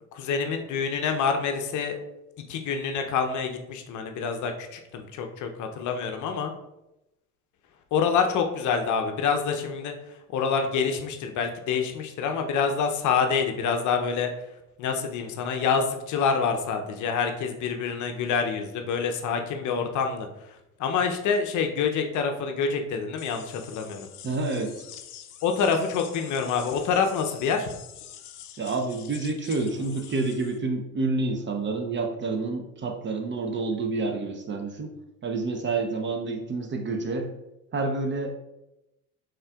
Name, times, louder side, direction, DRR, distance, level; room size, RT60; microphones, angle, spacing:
voice 1, 0.1-2.0 2.5-6.5 7.9-9.9 10.3-14.3 14.8-24.1 25.4-27.7, left 6 dB, 45° left, 5 dB, 0.6 m, -27 dB
sound 1, 23.2-30.6, left 10 dB, 85° left, 0.5 m, -46 dB
voice 2, 24.2-24.9 28.6-34.9 35.2-37.3 37.7-38.3, right 3 dB, 25° right, 4 dB, 0.6 m, -28 dB
5.4 x 3.6 x 2.3 m, 0.91 s
hypercardioid pair, 65°, 43 cm